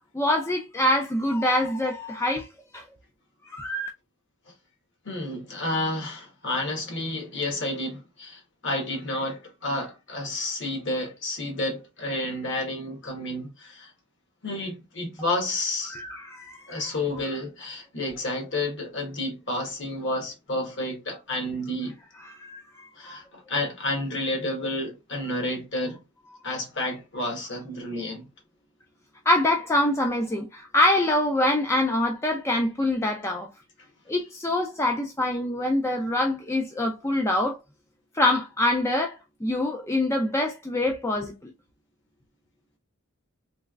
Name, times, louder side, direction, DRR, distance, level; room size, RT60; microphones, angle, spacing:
voice 1, 0.1-2.5 2.7-2.8 3.5-3.9 15.9-16.8 22.2-23.2 29.3-33.5 34.1-37.6 38.1-41.5, left 1 dB, 10° left, 0.4 m, -25 dB
voice 2, 5.0-13.9 14.4-16.0 16.7-22.0 23.0-26.0 26.4-28.2, left 1 dB, 55° left, 1.2 m, -30 dB
3.2 x 3.1 x 2.3 m
head